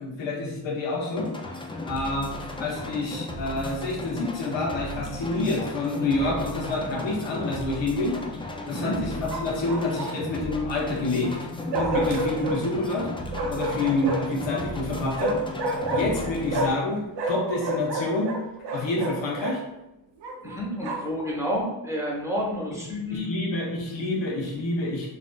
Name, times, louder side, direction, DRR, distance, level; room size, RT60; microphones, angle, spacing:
voice 1, 0.0-1.3 1.8-2.3 2.6-8.2 8.7-11.4 11.7-13.1 13.5-18.3 18.7-19.6 23.1-25.1, left 2 dB, 85° left, -3 dB, 0.9 m, -28 dB
sound 1, 1.2-16.7, left 1 dB, 15° left, 0.3 m, -35 dB
Bark, 6.2-6.8 9.3-10.4 11.7-12.6 13.3-14.4 15.2-16.9 17.1-19.6 20.2-21.2, right 1 dB, 70° right, 0.5 m, -30 dB
voice 2, 20.4-23.3, equal, 5° right, -4 dB, 1.0 m, -30 dB
3.2 x 2.6 x 2.2 m, 0.91 s
cardioid pair, 55°, 43 cm